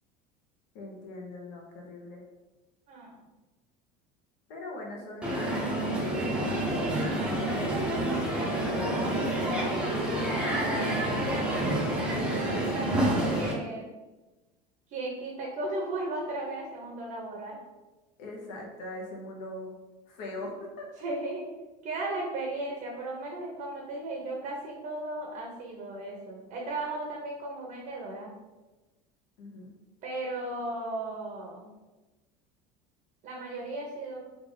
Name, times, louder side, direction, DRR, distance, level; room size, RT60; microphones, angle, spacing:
voice 1, 0.7-2.2 4.5-6.6 7.3-7.9 8.5-9.6 18.2-19.7 20.1-20.9 29.4-29.7, left 2 dB, 70° left, 0 dB, 1.0 m, -41 dB
voice 2, 2.9-3.2 10.3-11.6 12.3-13.9 14.9-17.6 21.0-21.5 21.8-28.3 30.0-31.7 33.2-34.3, right 2 dB, 45° right, -1 dB, 0.7 m, -36 dB
Crowd, 5.2-13.5, right 1 dB, 5° right, 0.6 m, -28 dB
3.3 x 2.5 x 3.7 m, 1.1 s
cardioid pair, 155°, 19 cm